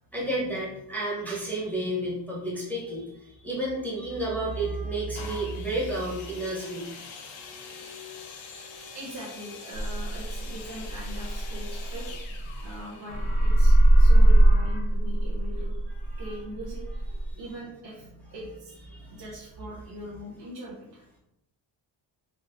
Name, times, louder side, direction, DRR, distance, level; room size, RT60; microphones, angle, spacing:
voice 1, 0.1-7.0 15.9-16.3 18.9-19.2, right 1 dB, 5° left, -7 dB, 1.1 m, -31 dB
sound 1, 5.1-14.8 15.6-15.7, left 5 dB, 90° left, 0.8 m, -45 dB
voice 2, 8.9-12.1 12.6-15.7 16.2-17.0 17.4-18.0 18.3-18.7 19.2-21.1, equal, 55° right, -5 dB, 0.9 m, -41 dB
sound 2, 9.7-12.8 13.1-17.3, right 1 dB, 45° left, 1.2 m, -21 dB
4.6 x 2.8 x 2.7 m, 0.83 s
cardioid pair, 145°, 45 cm